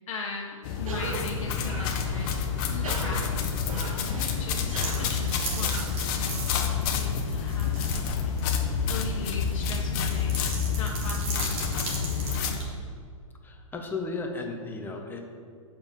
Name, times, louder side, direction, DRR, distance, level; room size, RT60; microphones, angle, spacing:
voice 1, 0.0-12.6, left 4 dB, 65° left, -1 dB, 1.3 m, -39 dB
sound 1, 0.6-12.6, left 6 dB, 35° left, 1.1 m, -28 dB
Cough, 0.8-6.6, right 5 dB, 75° right, 1.0 m, -40 dB
sound 2, 4.4-8.0 8.4-8.5 9.3-12.6, right 3 dB, 35° right, 2.4 m, -37 dB
voice 2, 13.4-15.2, left 3 dB, 10° left, 2 dB, 1.1 m, -34 dB
6.9 x 5.9 x 7.0 m, 2.2 s
hypercardioid pair, 120°, 18 cm